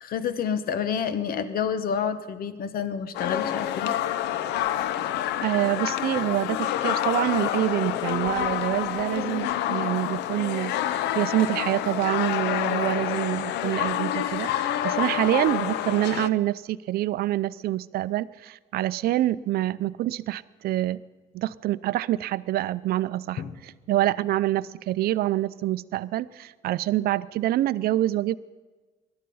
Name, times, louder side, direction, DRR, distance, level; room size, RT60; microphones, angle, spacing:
voice 1, 0.0-3.9 23.4-23.5, left 7 dB, 60° left, 12 dB, 1.1 m, -29 dB
sound 1, 3.1-16.3, left 12 dB, 85° left, 0.7 m, -28 dB
voice 2, 5.4-21.0 21.3-28.3, right 14 dB, 65° right, 17 dB, 0.5 m, -26 dB
20.5 x 12.0 x 5.5 m, 1.3 s
cardioid pair, 110°, 17 cm